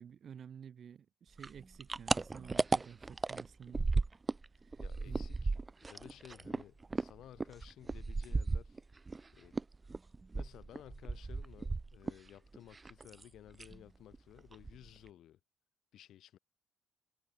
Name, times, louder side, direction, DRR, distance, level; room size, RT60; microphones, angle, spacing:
voice 1, 0.0-3.9 4.7-5.2, right 8 dB, 50° right, 2.5 m, -52 dB
sound 1, 1.4-4.5 4.7-9.2 9.5-12.3 12.5-13.2 13.5-13.8 14.1-14.2 14.5-15.1, right 3 dB, 25° right, 0.3 m, -35 dB
voice 2, 4.8-8.8 9.3-9.5 10.3-15.4 15.9-16.4, left 12 dB, 70° left, 3.1 m, -56 dB
cardioid pair, 90°, 0 cm